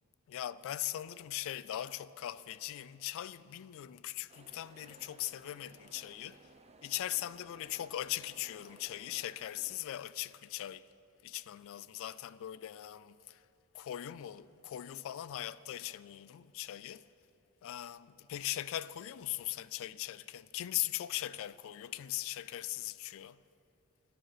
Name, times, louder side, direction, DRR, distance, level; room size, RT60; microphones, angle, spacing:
voice 1, 0.3-6.4 6.8-10.8 11.2-13.4 13.7-17.0 17.6-23.4, left 13 dB, 60° left, 0.3 m, -40 dB
sound 1, 4.3-9.8, right 3 dB, 30° right, 0.7 m, -59 dB
17.0 x 10.0 x 5.0 m
head